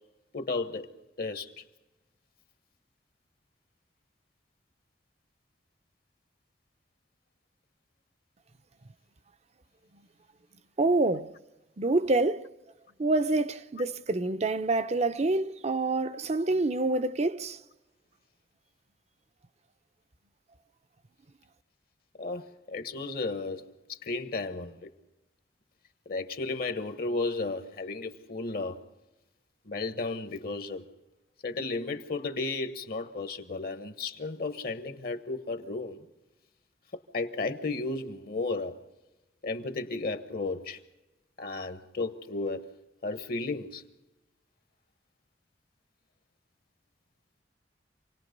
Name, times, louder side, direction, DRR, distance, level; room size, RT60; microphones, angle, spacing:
voice 1, 0.3-0.9 1.2-1.6 22.2-23.6 23.9-24.9 26.1-28.8 29.6-30.8 31.4-36.0 37.1-38.7 39.4-40.8 41.4-42.6 43.0-43.8, left 3 dB, 55° left, 1.2 m, -33 dB
voice 2, 10.8-11.3 11.8-12.5 13.0-17.6, right 2 dB, 40° right, 0.6 m, -27 dB
27.5 x 18.5 x 5.3 m
head